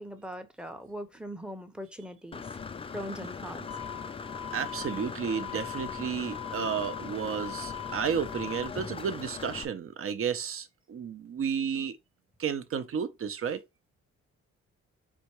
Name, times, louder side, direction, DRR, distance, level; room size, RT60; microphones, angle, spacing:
voice 1, 0.0-2.4 2.9-3.7, equal, 5° right, 0.8 m, -40 dB
Engine / Mechanisms, 2.3-9.6, left 5 dB, 20° left, 0.3 m, -40 dB
sound 1, 3.7-8.7, left 9 dB, 55° left, 0.6 m, -42 dB
voice 2, 4.5-11.9 12.4-13.6, right 7 dB, 45° right, 0.7 m, -32 dB
4.3 x 3.6 x 3.0 m
cardioid pair, 90°, 30 cm